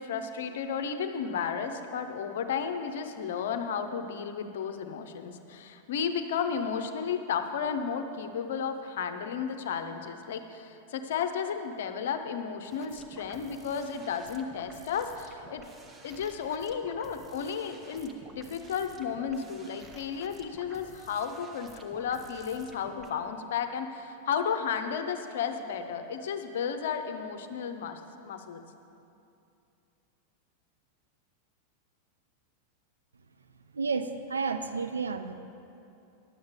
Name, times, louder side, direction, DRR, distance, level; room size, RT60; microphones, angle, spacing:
voice 1, 0.0-15.7 16.0-28.6, left 7 dB, 60° left, 8 dB, 0.7 m, -33 dB
sound 1, 12.6-23.1, right 2 dB, 20° right, 0.9 m, -52 dB
voice 2, 33.7-35.3, right 4 dB, 75° right, 8 dB, 0.5 m, -31 dB
11.0 x 7.9 x 5.3 m, 2.7 s
figure-of-eight pair, 90°, 0 cm